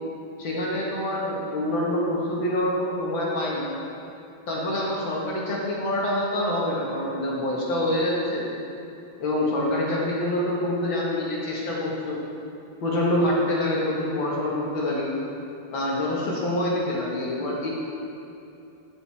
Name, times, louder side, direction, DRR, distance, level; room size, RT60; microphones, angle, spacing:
voice 1, 0.4-3.7 4.5-8.5 9.2-12.2 12.8-15.1 15.7-17.7, left 1 dB, 85° left, -5 dB, 2.5 m, -26 dB
13.5 x 5.6 x 4.3 m, 2.7 s
omnidirectional pair, 2.1 m